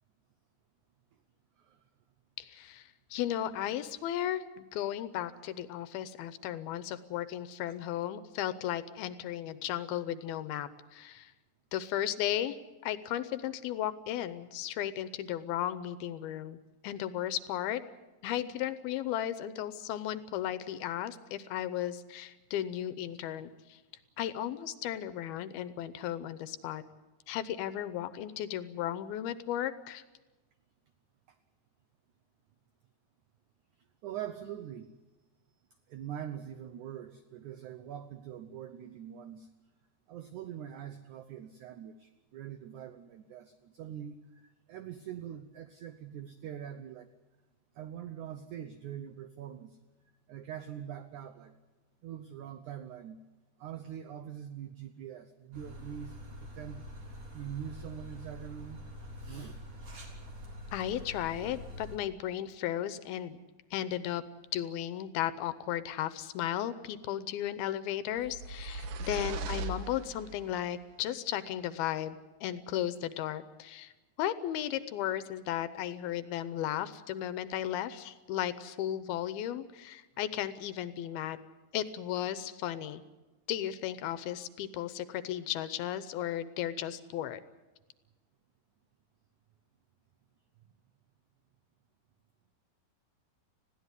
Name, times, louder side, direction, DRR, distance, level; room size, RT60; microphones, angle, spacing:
voice 1, 2.4-11.3 11.7-12.6 12.8-16.6 16.8-17.8 18.2-23.8 24.2-26.8 27.3-30.0 60.7-63.4 63.7-64.2 64.5-73.9 74.2-81.4 81.7-83.0 83.5-87.4, left 11 dB, 75° left, 13 dB, 2.6 m, -35 dB
voice 2, 34.0-34.9 35.9-39.5 40.1-47.1 47.7-49.8 50.3-51.5 52.0-53.2 53.6-58.8 59.1-59.6, right 10 dB, 85° right, 9 dB, 1.7 m, -43 dB
sound 1, 55.5-62.0, left 1 dB, 40° right, 4.4 m, -46 dB
sound 2, 68.2-70.6, right 3 dB, 65° right, 2.6 m, -38 dB
20.5 x 15.5 x 9.7 m, 1.2 s
omnidirectional pair, 4.7 m